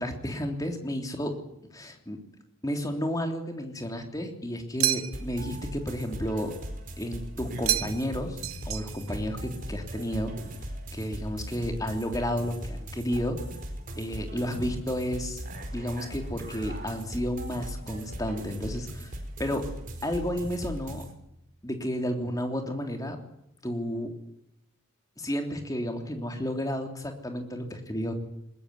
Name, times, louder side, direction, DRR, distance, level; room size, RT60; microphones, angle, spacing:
voice 1, 0.0-1.3 1.7-2.2 2.6-6.5 7.0-10.3 10.9-13.4 14.0-15.4 15.7-19.1 19.4-19.7 20.0-21.0 21.6-23.2 23.6-24.1 25.2-28.1, equal, 15° left, 4 dB, 3.3 m, -32 dB
sound 1, 4.8-5.4 7.7-8.2 8.4-9.2, right 13 dB, 85° right, 1.0 m, -29 dB
sound 2, 5.1-21.1, equal, 40° right, 4.6 m, -39 dB
21.0 x 20.5 x 9.6 m, 0.83 s
head